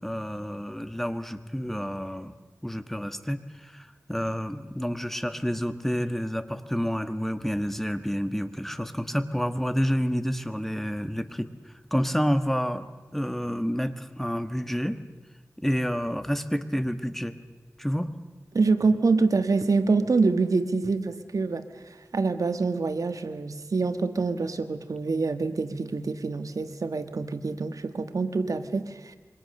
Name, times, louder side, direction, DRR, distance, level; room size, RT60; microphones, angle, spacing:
voice 1, 0.0-2.3 2.6-12.8 13.1-15.0 15.6-17.3 17.8-18.1, equal, 5° left, 10 dB, 1.4 m, -29 dB
voice 2, 18.5-29.2, right 4 dB, 85° right, 9 dB, 1.5 m, -26 dB
27.0 x 24.0 x 6.6 m, 1.3 s
wide cardioid pair, 70°, 6 cm